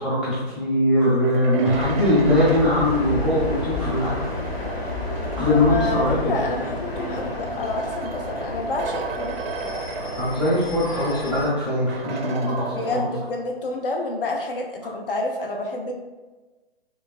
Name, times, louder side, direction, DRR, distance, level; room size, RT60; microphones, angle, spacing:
voice 1, 0.0-4.1 5.4-6.3 10.2-13.1, left 1 dB, 5° right, -10 dB, 0.6 m, -21 dB
sound 1, 1.0-5.7 6.7-10.8 11.1-11.2 11.9-13.4, right 4 dB, 70° right, 0.4 m, -36 dB
sound 2, 1.7-11.5, left 2 dB, 85° left, 0.9 m, -31 dB
voice 2, 5.5-9.4 12.7-16.0, left 2 dB, 60° left, 2 dB, 0.5 m, -28 dB
3.0 x 2.2 x 2.5 m, 1.2 s
figure-of-eight pair, 135°, 31 cm